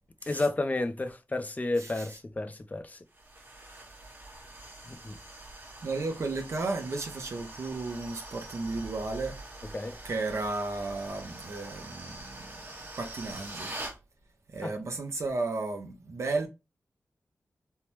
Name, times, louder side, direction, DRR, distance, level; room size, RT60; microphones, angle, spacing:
voice 1, 0.3-3.0 4.9-5.2 9.7-10.0 14.6-14.7, left 2 dB, 30° left, 0.4 m, -31 dB
voice 2, 1.8-2.2 4.9-5.0 5.8-9.4 10.0-12.6 13.0-13.8 14.5-16.5, right 3 dB, 65° right, 0.6 m, -34 dB
sound 1, 3.1-14.0, right 2 dB, 40° right, 0.9 m, -44 dB
3.3 x 2.0 x 2.9 m
wide cardioid pair, 65°, 5 cm